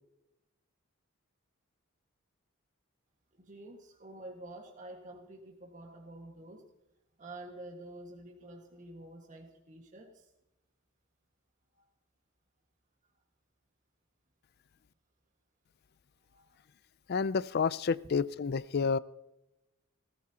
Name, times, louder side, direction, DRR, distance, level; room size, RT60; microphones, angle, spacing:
voice 1, 3.3-6.6 7.2-10.3 11.8-11.9 16.3-16.6, right 1 dB, 35° right, 1 dB, 1.7 m, -49 dB
voice 2, 17.1-19.0, left 5 dB, 45° left, 19 dB, 0.4 m, -29 dB
19.0 x 14.0 x 2.9 m, 0.93 s
head